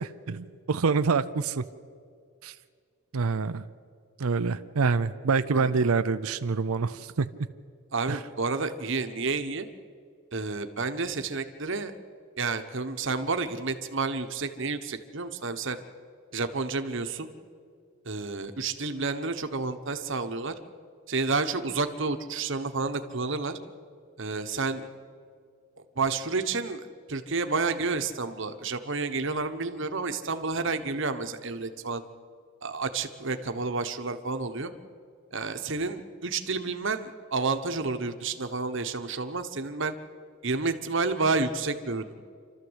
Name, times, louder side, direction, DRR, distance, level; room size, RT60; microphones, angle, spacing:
voice 1, 0.0-1.6 2.4-2.5 3.1-3.6 4.2-7.3 8.1-8.2, right 4 dB, 75° right, 12 dB, 0.6 m, -26 dB
voice 2, 5.5-5.9 7.9-9.7 10.3-11.9 12.4-15.8 16.3-17.3 18.0-20.5 21.1-23.6 24.2-24.9 26.0-32.0 32.6-34.7 35.3-39.9 40.4-42.2, right 4 dB, 55° right, 8 dB, 1.1 m, -30 dB
27.0 x 13.0 x 8.1 m, 2.2 s
head